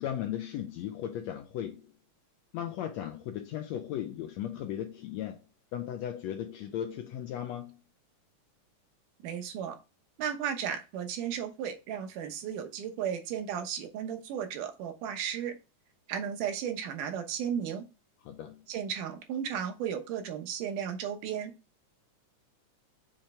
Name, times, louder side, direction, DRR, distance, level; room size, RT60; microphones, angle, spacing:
voice 1, 0.0-1.9 2.5-5.4 5.7-7.8 18.2-18.6, left 10 dB, 80° left, 1.6 m, -36 dB
voice 2, 9.2-9.8 10.2-15.5 16.1-17.8 18.7-21.5, right 8 dB, 80° right, 2.6 m, -34 dB
7.4 x 3.3 x 4.3 m
omnidirectional pair, 3.7 m